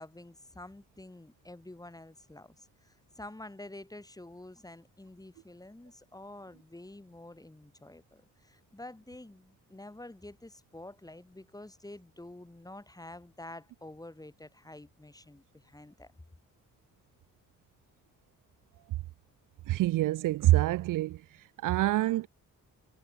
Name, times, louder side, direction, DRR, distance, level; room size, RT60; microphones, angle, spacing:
voice 1, 0.0-16.1, left 1 dB, 10° left, 4.2 m, -48 dB
voice 2, 19.7-21.2 21.6-22.3, right 16 dB, 75° right, 0.5 m, -26 dB
cardioid pair, 90°, 32 cm